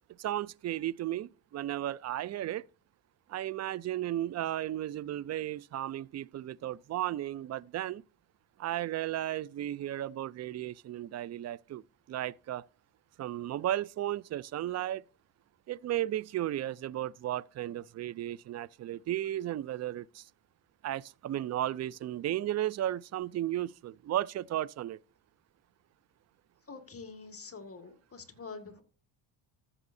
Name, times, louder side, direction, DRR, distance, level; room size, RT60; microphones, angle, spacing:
voice 1, 0.2-2.7 3.3-8.0 8.6-11.8 12.1-12.7 13.2-15.0 15.7-20.2 20.8-25.0, right 13 dB, 35° right, 0.4 m, -34 dB
voice 2, 26.7-28.8, left 4 dB, 25° left, 1.8 m, -46 dB
14.0 x 7.2 x 2.6 m
supercardioid pair, 90°, 49 cm